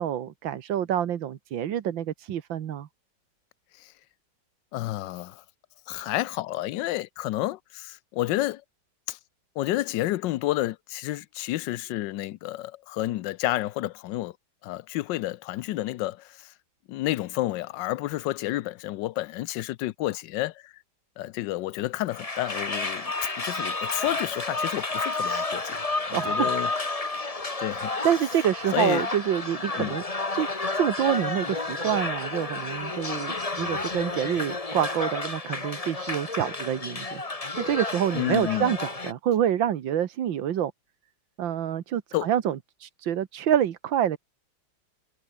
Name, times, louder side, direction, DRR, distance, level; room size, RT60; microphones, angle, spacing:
voice 1, 0.0-2.9 26.1-26.5 28.0-30.0 30.3-30.5 30.7-37.2 37.6-40.7 41.4-44.2, right 10 dB, 85° right, 1.9 m, -27 dB
voice 2, 4.7-5.4 5.9-8.6 9.1-9.2 9.6-14.3 14.6-16.5 16.9-20.7 21.2-25.8 26.1-26.7 27.6-27.9 28.7-29.0 29.8-30.0 38.1-38.7 42.1-42.3, left 16 dB, 75° left, 1.3 m, -30 dB
sound 1, 22.1-39.1, left 3 dB, 20° left, 1.6 m, -31 dB
omnidirectional pair, 2.0 m